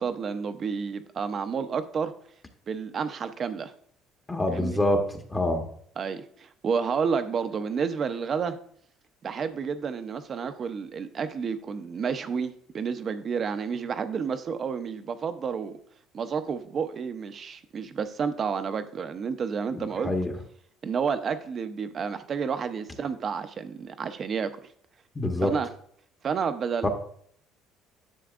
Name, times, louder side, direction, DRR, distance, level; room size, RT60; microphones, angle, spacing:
voice 1, 0.0-2.1 2.7-3.7 4.5-4.8 6.0-8.6 9.2-15.8 16.1-20.1 20.8-24.5 25.4-25.7 26.2-26.9, right 6 dB, 40° right, 10 dB, 0.7 m, -30 dB
voice 2, 4.3-5.7 19.7-20.3 25.1-25.5 26.8-26.9, left 1 dB, 15° left, 3 dB, 1.1 m, -26 dB
10.0 x 6.9 x 2.5 m, 0.64 s
cardioid pair, 125°, 0 cm